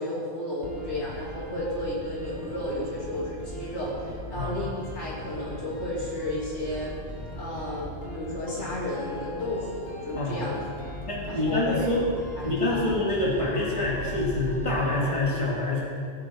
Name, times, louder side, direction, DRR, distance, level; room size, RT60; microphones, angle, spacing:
voice 1, 0.0-6.9 7.4-10.9 11.3-11.9 12.4-12.8, left 1 dB, 85° left, -5 dB, 3.2 m, -33 dB
sound 1, 0.6-15.2, left 2 dB, 60° left, 3.0 m, -39 dB
voice 2, 10.2-10.5 11.1-12.0 12.4-15.8, left 2 dB, 30° left, -5 dB, 2.3 m, -26 dB
18.0 x 7.8 x 4.6 m, 2.2 s
omnidirectional pair, 1.1 m